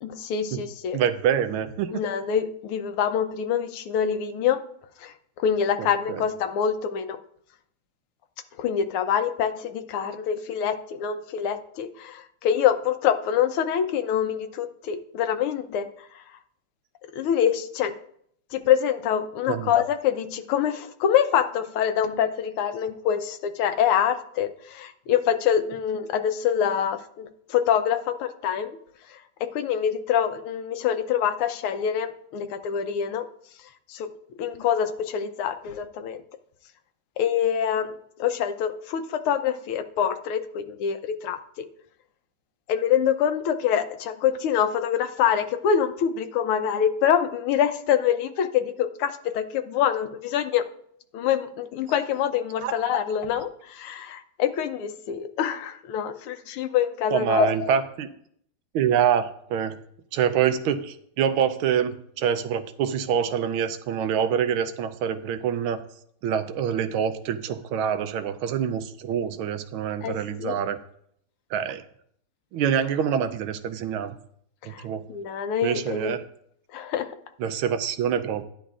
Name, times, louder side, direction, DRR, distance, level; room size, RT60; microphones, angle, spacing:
voice 1, 0.0-1.0 1.9-4.6 5.0-7.2 8.6-16.2 17.1-17.9 18.5-28.7 29.1-29.2 29.5-33.3 33.9-34.1 34.4-36.2 37.2-37.9 38.2-41.6 42.7-50.6 51.1-57.7 70.0-70.6 74.6-74.8 75.1-76.1 76.7-77.1, left 8 dB, 80° left, 9 dB, 1.6 m, -25 dB
voice 2, 0.9-1.9 5.8-6.2 19.5-19.7 52.6-52.7 57.1-58.1 58.7-59.8 60.1-65.8 66.2-70.8 71.5-71.8 72.5-74.2 74.6-75.0 75.6-76.2 77.4-78.4, right 8 dB, 80° right, 9 dB, 1.4 m, -25 dB
11.5 x 10.0 x 2.4 m, 0.67 s
omnidirectional pair, 2.4 m